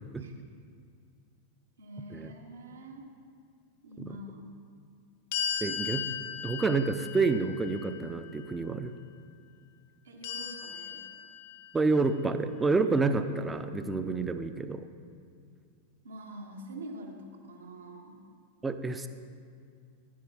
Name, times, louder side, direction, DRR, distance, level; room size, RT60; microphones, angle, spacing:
voice 1, 1.8-3.1 3.8-4.5 10.0-11.0 16.0-18.2, right 1 dB, 70° right, 2 dB, 1.3 m, -45 dB
sound 1, 5.3-8.5 10.2-12.0, left 8 dB, 55° left, 0.7 m, -37 dB
voice 2, 5.6-6.0 6.4-8.9 11.7-14.8 18.6-19.1, right 3 dB, 10° right, 10 dB, 0.5 m, -28 dB
10.0 x 7.5 x 5.6 m, 2.2 s
figure-of-eight pair, 90°, 0 cm